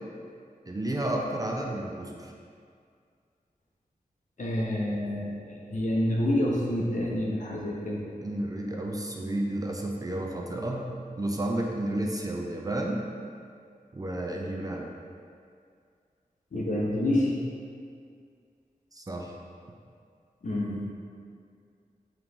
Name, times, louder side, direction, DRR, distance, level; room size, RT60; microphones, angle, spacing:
voice 1, 0.7-2.3 8.2-13.0 13.9-14.9 18.9-19.4, right 1 dB, 25° right, 0 dB, 0.4 m, -31 dB
voice 2, 4.4-8.0 16.5-17.3 20.4-20.8, left 1 dB, 60° left, -3 dB, 0.7 m, -28 dB
3.7 x 3.0 x 3.8 m, 2.2 s
wide cardioid pair, 90°, 15 cm